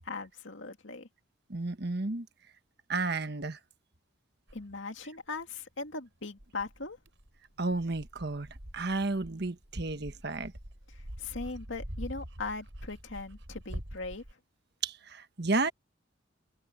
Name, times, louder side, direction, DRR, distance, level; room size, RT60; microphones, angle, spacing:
voice 1, 0.0-1.1 4.5-7.0 10.9-14.2, left 3 dB, 75° left, 2.2 m, -39 dB
voice 2, 1.5-2.3 2.9-3.6 7.6-10.5 14.8-15.7, right 3 dB, 55° right, 1.4 m, -32 dB
Dog, 4.5-4.6 5.4-5.5 6.4-14.3, equal, 70° right, 4.7 m, -45 dB
head